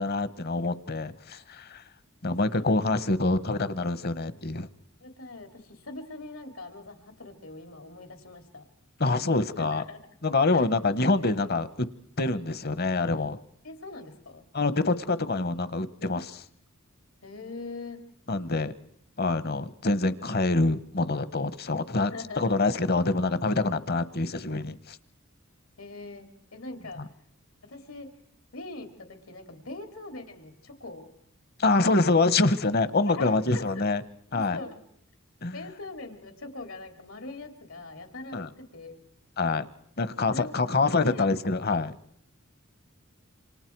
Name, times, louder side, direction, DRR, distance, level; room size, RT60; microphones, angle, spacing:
voice 1, 0.0-1.8 2.2-4.7 9.0-9.8 10.2-11.9 12.2-13.4 14.5-16.4 18.3-18.7 19.2-25.0 27.0-27.1 31.6-34.0 34.3-34.6 35.4-35.6 38.3-38.5 39.4-39.7 40.0-41.9, left 3 dB, 50° left, 15 dB, 1.1 m, -26 dB
voice 2, 2.2-3.1 5.0-8.6 9.6-10.1 10.5-10.7 13.6-14.4 17.2-18.0 22.1-22.6 25.8-27.0 27.7-28.1 28.5-31.1 33.1-33.8 34.3-34.8 35.5-39.1 40.3-40.7 41.0-41.3, left 3 dB, 85° left, 6 dB, 3.2 m, -42 dB
27.5 x 26.5 x 4.6 m, 0.68 s
head